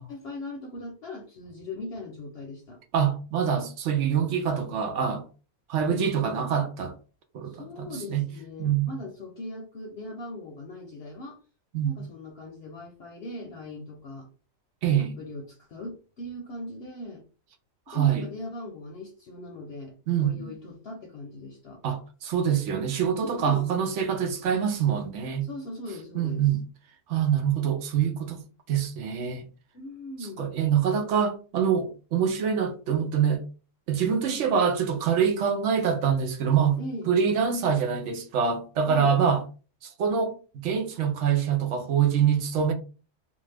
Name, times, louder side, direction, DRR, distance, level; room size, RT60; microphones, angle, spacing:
voice 1, 0.0-2.8 5.9-6.5 7.4-11.4 11.8-14.3 15.0-17.2 17.9-19.9 20.2-21.8 23.2-23.8 25.4-26.6 29.7-30.6 34.1-34.5 36.8-37.1 38.8-39.2, left 2 dB, 60° left, 0.7 m, -39 dB
voice 2, 2.9-5.3 5.7-6.9 7.3-8.3 8.6-8.9 11.7-11.9 14.8-15.2 17.9-18.3 20.1-20.5 21.8-25.5 26.1-26.6 27.1-28.4 28.7-29.5 30.4-33.4 33.9-36.8 37.1-39.4 39.8-40.4 40.6-42.7, right 7 dB, 70° right, 0.9 m, -25 dB
2.5 x 2.4 x 3.3 m
omnidirectional pair, 1.4 m